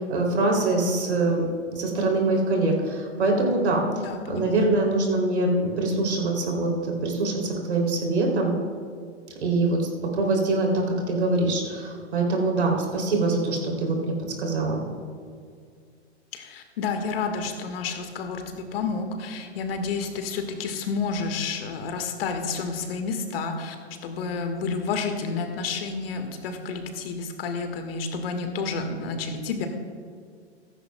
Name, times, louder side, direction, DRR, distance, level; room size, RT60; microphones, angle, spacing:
voice 1, 0.0-1.4 1.7-3.8 4.3-8.5 9.4-14.8, right 2 dB, 70° right, 0 dB, 3.1 m, -24 dB
voice 2, 4.0-4.7 16.3-23.7 24.0-29.7, left 4 dB, 60° left, 5 dB, 1.7 m, -30 dB
15.0 x 14.5 x 2.3 m, 2.1 s
hypercardioid pair, 110°, 34 cm